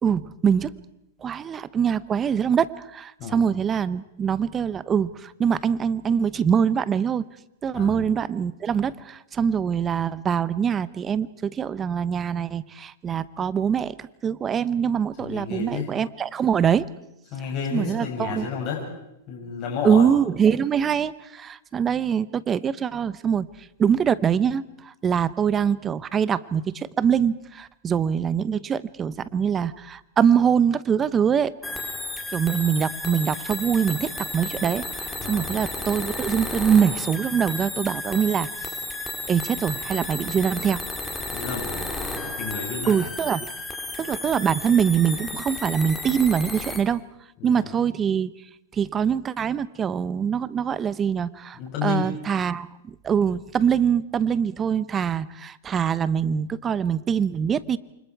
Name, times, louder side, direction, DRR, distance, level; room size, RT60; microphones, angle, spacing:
voice 1, 0.0-0.7 1.2-7.3 7.6-16.9 17.7-18.5 19.8-23.5 23.8-31.5 32.3-34.8 35.3-38.5 39.3-40.8 42.9-43.5 44.0-47.0 47.4-48.3 48.7-57.8, right 7 dB, 20° right, 17 dB, 0.9 m, -23 dB
voice 2, 15.2-15.9 17.3-18.8 19.3-20.1 35.2-35.5 41.3-41.7 42.4-43.1 47.4-47.7 51.5-52.1, left 6 dB, 35° left, -1 dB, 6.7 m, -31 dB
sound 1, 31.6-46.8, left 2 dB, 5° left, 3.1 m, -33 dB
28.5 x 25.0 x 4.8 m, 0.84 s
hypercardioid pair, 140°, 0 cm